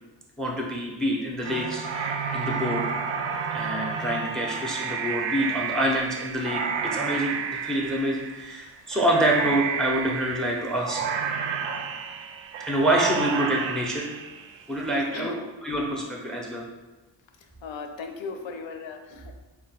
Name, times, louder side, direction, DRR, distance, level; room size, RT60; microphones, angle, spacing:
voice 1, 0.4-2.8 3.5-7.4 7.6-11.0 12.7-14.1 14.7-15.3 15.6-16.7, right 1 dB, ahead, -1 dB, 0.4 m, -26 dB
sound 1, 1.4-14.8, right 6 dB, 80° right, 0.5 m, -31 dB
voice 2, 15.0-15.5 17.6-19.3, left 4 dB, 90° left, 5 dB, 0.7 m, -37 dB
4.4 x 2.2 x 4.0 m, 1.1 s
wide cardioid pair, 175°, 44 cm